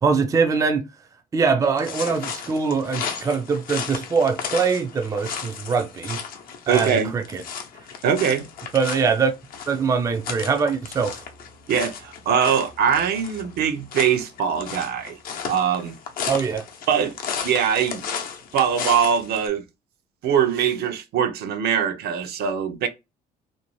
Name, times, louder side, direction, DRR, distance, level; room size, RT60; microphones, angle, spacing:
voice 1, 0.0-0.9 1.3-6.2 6.7-7.4 8.7-9.3 9.7-11.2 16.3-16.7, right 5 dB, 20° right, 0.4 m, -22 dB
sound 1, 1.8-19.5, left 7 dB, 60° left, 0.7 m, -34 dB
voice 2, 6.7-7.1 8.0-8.5 11.7-15.2 15.5-16.0 16.9-17.1 17.4-18.0 18.5-19.6 20.2-22.9, right 7 dB, 70° right, 0.6 m, -22 dB
2.6 x 2.0 x 3.0 m
cardioid pair, 110°, 17 cm